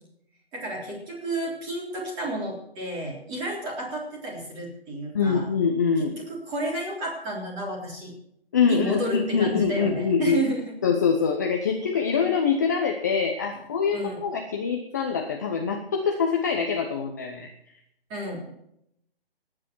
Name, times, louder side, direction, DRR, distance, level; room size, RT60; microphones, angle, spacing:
voice 1, 0.5-5.5 6.0-8.1 8.6-10.7 13.9-14.2 18.1-18.5, right 1 dB, 15° right, -2 dB, 3.6 m, -31 dB
voice 2, 5.1-6.2 8.5-10.4 10.8-17.5, left 6 dB, 20° left, 2 dB, 0.8 m, -24 dB
27.0 x 9.9 x 4.6 m, 0.75 s
hypercardioid pair, 170°, 30 cm